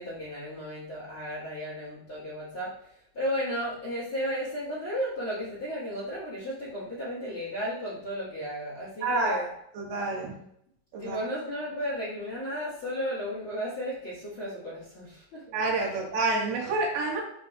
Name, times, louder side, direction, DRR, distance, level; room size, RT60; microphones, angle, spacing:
voice 1, 0.0-2.7 3.1-9.5 11.0-15.4 15.9-16.0, equal, 50° left, -7 dB, 1.4 m, -34 dB
voice 2, 9.0-9.4 9.7-10.4 10.9-11.2 15.5-17.2, right 3 dB, 60° right, -3 dB, 3.3 m, -28 dB
12.0 x 4.8 x 2.4 m, 0.72 s
omnidirectional pair, 5.8 m